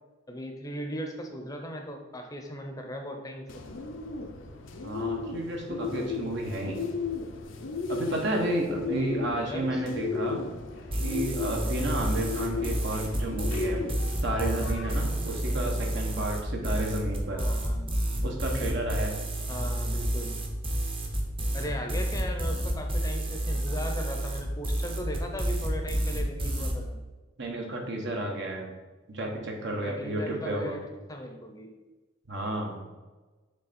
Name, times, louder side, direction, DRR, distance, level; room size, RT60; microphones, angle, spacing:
voice 1, 0.3-3.5 8.9-9.8 17.3-17.9 19.5-20.3 21.5-27.0 29.8-30.8 31.1-31.7, equal, 20° left, 3 dB, 0.7 m, -37 dB
Bird, 3.5-16.2, left 4 dB, 75° left, 0.7 m, -36 dB
voice 2, 4.8-6.9 7.9-10.4 11.0-13.9 14.2-17.4 18.2-19.1 27.4-28.7 29.1-30.8 32.3-32.8, right 1 dB, 65° right, 0 dB, 1.2 m, -31 dB
sound 1, 10.9-26.7, right 1 dB, 30° right, 0.9 m, -30 dB
6.9 x 3.4 x 4.2 m, 1.2 s
head